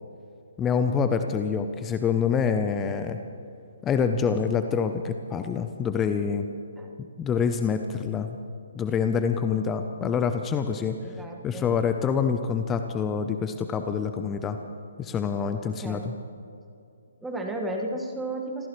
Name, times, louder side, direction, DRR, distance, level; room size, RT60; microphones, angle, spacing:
voice 1, 0.6-3.2 3.8-6.5 7.0-8.4 8.7-11.0 11.4-14.6 15.0-16.1, left 6 dB, 15° left, 8 dB, 0.7 m, -26 dB
voice 2, 11.0-11.8 15.6-16.1 17.2-18.7, right 1 dB, 5° right, 1 dB, 1.7 m, -34 dB
26.5 x 15.0 x 3.2 m, 2.6 s
figure-of-eight pair, 135°, 0 cm